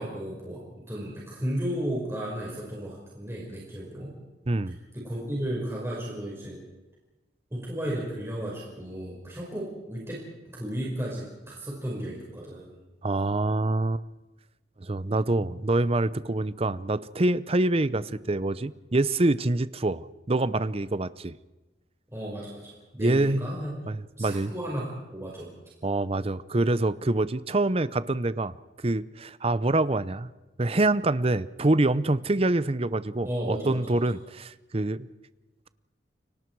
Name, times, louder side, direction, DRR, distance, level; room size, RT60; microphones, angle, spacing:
voice 1, 0.0-4.1 4.7-6.6 7.5-12.8 22.1-23.9 24.2-25.5 33.3-34.0, right 1 dB, 15° right, -4 dB, 5.3 m, -34 dB
voice 2, 4.5-4.8 13.0-14.0 14.8-21.3 23.0-23.4 23.9-24.5 25.8-28.5 28.8-30.3 30.6-35.1, right 2 dB, 30° right, 16 dB, 0.7 m, -26 dB
29.5 x 24.5 x 4.7 m, 1.1 s
head